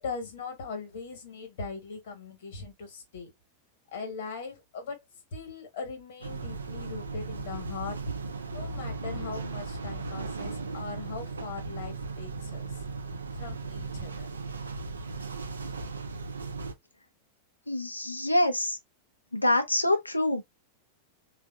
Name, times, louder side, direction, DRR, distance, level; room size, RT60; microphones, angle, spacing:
voice 1, 0.0-3.3 3.9-5.0 5.3-8.0 8.5-12.8 13.3-14.3, left 4 dB, 55° left, 1.3 m, -40 dB
sound 1, 6.2-16.7, right 3 dB, 75° right, 0.5 m, -37 dB
voice 2, 17.7-18.8 19.3-20.4, left 1 dB, 85° left, 0.6 m, -25 dB
3.4 x 2.5 x 2.3 m
figure-of-eight pair, 90°, 0 cm